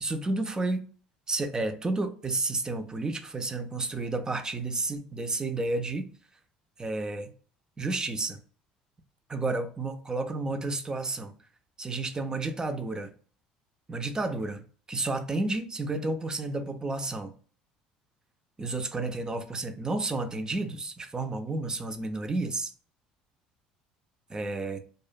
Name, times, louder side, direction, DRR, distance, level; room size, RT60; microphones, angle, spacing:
voice 1, 0.0-0.9 1.3-6.1 6.8-7.3 7.8-8.4 9.3-11.3 11.8-13.1 13.9-14.6 14.9-17.3 18.6-22.7 24.3-24.8, right 2 dB, 20° right, 0.4 m, -31 dB
2.4 x 2.1 x 2.4 m
hypercardioid pair, 75°, 3 cm